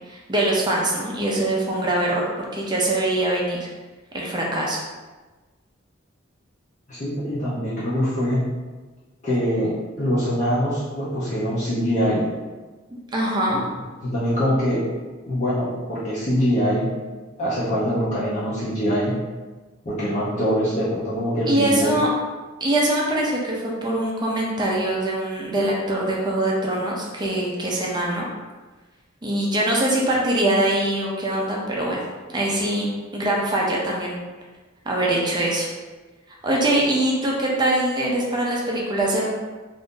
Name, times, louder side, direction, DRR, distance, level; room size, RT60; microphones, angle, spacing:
voice 1, 0.1-2.2 2.5-3.7 4.1-4.8 12.9-13.6 21.5-22.1 22.6-28.2 29.2-32.0 32.3-32.8 33.1-34.2 34.8-35.7 36.4-39.3, right 1 dB, 20° right, -3 dB, 0.5 m, -23 dB
voice 2, 6.9-8.4 9.2-9.7 10.0-12.2 14.0-14.8 15.2-16.9 17.4-19.1 19.8-22.0, equal, 35° left, -10 dB, 0.7 m, -23 dB
2.6 x 2.6 x 3.6 m, 1.3 s
head